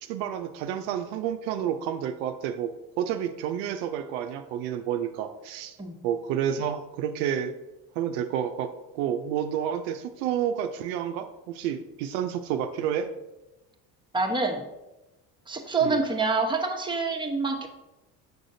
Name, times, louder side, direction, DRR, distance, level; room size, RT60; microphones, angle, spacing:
voice 1, 0.0-5.8 6.0-7.5 8.0-13.1 15.8-16.0, right 9 dB, 75° right, 7 dB, 0.6 m, -30 dB
voice 2, 14.1-14.6 15.5-17.7, right 3 dB, 10° right, 2 dB, 0.9 m, -26 dB
6.7 x 6.2 x 2.7 m, 0.99 s
hypercardioid pair, 70°, 49 cm